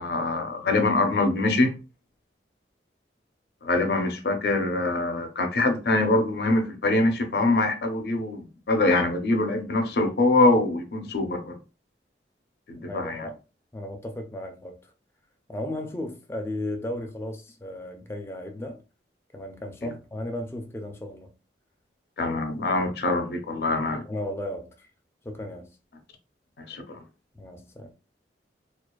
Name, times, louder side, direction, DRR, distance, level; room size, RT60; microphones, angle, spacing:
voice 1, 0.0-1.8 3.6-11.5 12.7-13.3 19.8-19.9 22.2-24.1 26.6-27.0, left 2 dB, 65° left, 0.6 m, -24 dB
voice 2, 12.7-13.4 13.7-14.9 15.5-18.8 19.3-21.3 24.1-24.9 25.2-25.7 27.3-27.9, left 1 dB, 15° left, 0.4 m, -35 dB
2.4 x 2.4 x 2.2 m
head